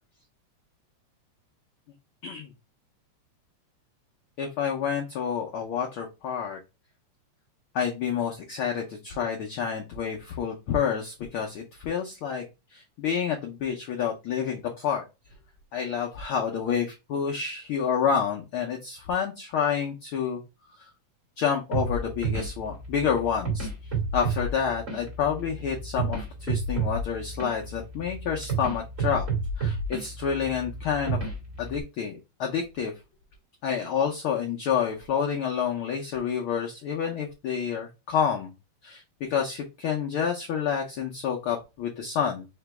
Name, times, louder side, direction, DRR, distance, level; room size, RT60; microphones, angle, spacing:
voice 1, 4.4-6.6 7.7-12.4 12.7-15.0 15.7-20.4 20.8-20.9 21.4-23.7 24.1-29.3 29.6-31.2 31.6-32.9 33.6-38.5 38.8-39.0 39.3-42.4, left 7 dB, 85° left, 1 dB, 1.1 m, -28 dB
sound 1, 21.7-31.8, right 4 dB, 30° right, 1.8 m, -31 dB
4.4 x 2.9 x 3.3 m, 0.26 s
omnidirectional pair, 3.3 m